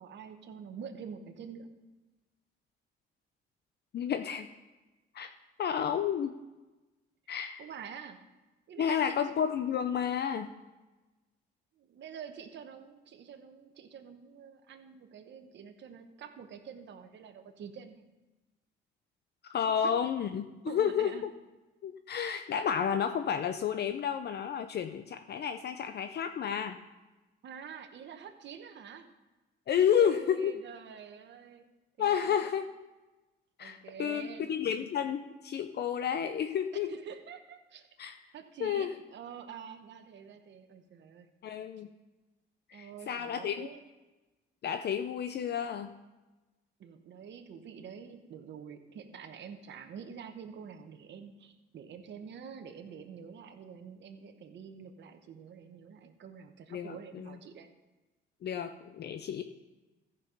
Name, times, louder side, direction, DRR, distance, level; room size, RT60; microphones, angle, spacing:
voice 1, 0.0-1.7 7.6-8.2 8.7-9.2 11.8-18.0 20.7-21.2 27.4-29.1 29.9-31.7 32.0-32.5 33.6-34.5 36.7-37.9 38.3-41.3 42.7-43.8 46.8-57.7, right 7 dB, 65° right, 6 dB, 1.1 m, -47 dB
voice 2, 3.9-4.5 5.1-5.3 5.6-6.4 7.3-7.7 8.8-10.5 19.5-21.3 21.8-26.8 29.7-30.5 32.0-32.7 33.6-36.9 38.0-38.2 38.6-38.9 41.4-41.9 42.7-43.7 44.6-45.9 56.7-57.4 58.4-59.4, left 8 dB, 55° left, 8 dB, 0.6 m, -31 dB
14.0 x 5.4 x 5.5 m, 1.1 s
cardioid pair, 90°, 20 cm